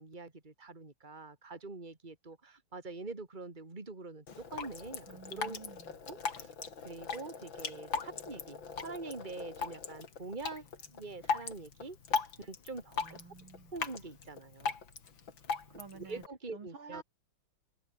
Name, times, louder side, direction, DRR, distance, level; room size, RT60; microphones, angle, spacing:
voice 1, 0.0-5.6 6.1-6.5 6.8-13.2 13.7-14.8 15.9-17.0, right 3 dB, 20° right, 3.2 m, -45 dB
Drip, 4.3-16.3, left 5 dB, 65° left, 3.4 m, -39 dB
voice 2, 5.1-6.0 13.0-13.7 15.8-16.2 16.5-17.0, right 5 dB, 75° right, 4.1 m, -50 dB
omnidirectional pair, 2.2 m